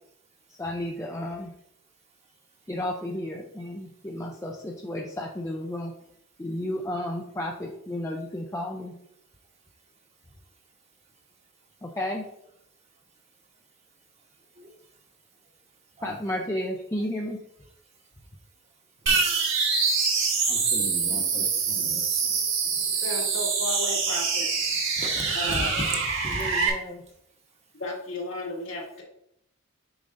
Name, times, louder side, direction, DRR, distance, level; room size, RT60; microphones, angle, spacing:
voice 1, 0.6-1.5 2.7-5.9 6.4-8.9 11.8-12.2 16.0-17.4 21.1-21.5 25.4-25.9 26.2-27.0, left 1 dB, 15° left, -1 dB, 0.5 m, -33 dB
sound 1, 19.1-26.7, right 5 dB, 60° right, 1.7 m, -25 dB
voice 2, 20.5-22.0 25.0-26.5, right 1 dB, 30° right, 1 dB, 1.1 m, -36 dB
voice 3, 23.0-24.5 25.3-25.7 27.8-29.0, left 1 dB, 65° left, -3 dB, 2.1 m, -33 dB
7.0 x 5.3 x 2.6 m, 0.77 s
head